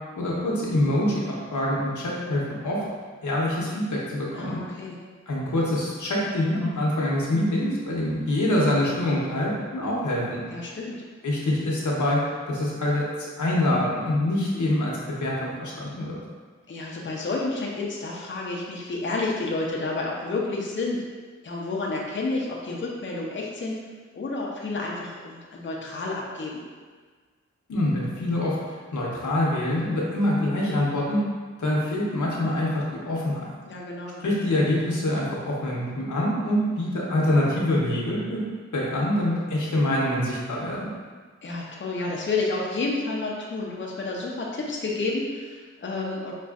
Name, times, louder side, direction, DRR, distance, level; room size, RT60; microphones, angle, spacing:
voice 1, 0.2-1.3 1.5-2.8 3.2-4.6 5.3-10.4 11.2-16.2 27.7-31.2 31.6-33.5 34.2-38.4 38.7-40.9, left 1 dB, 80° left, -4 dB, 0.9 m, -25 dB
voice 2, 4.3-5.0 10.5-11.0 16.7-21.0 21.4-23.8 24.1-26.6 33.7-34.2 41.4-46.3, left 3 dB, 40° left, -3 dB, 0.6 m, -30 dB
5.2 x 2.4 x 2.4 m, 1.5 s
cardioid pair, 45°, 30 cm